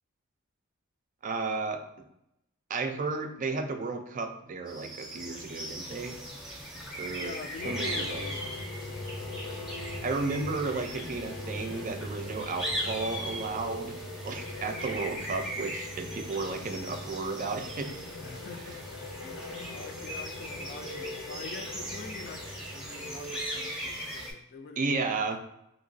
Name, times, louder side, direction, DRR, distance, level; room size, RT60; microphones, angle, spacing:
voice 1, 1.2-1.8 2.7-6.1 7.0-7.3 7.6-8.2 10.0-13.9 14.2-17.9 24.8-25.4, right 3 dB, 40° right, 6 dB, 0.4 m, -33 dB
sound 1, 4.7-24.3, equal, 5° right, 0.6 m, -39 dB
voice 2, 7.1-8.4 18.2-19.4 19.7-22.4 22.7-24.8 25.3-25.4, left 4 dB, 50° left, 6 dB, 0.3 m, -45 dB
sound 2, 7.6-23.1, left 2 dB, 85° left, 0.7 m, -42 dB
3.1 x 2.8 x 2.6 m, 0.82 s
head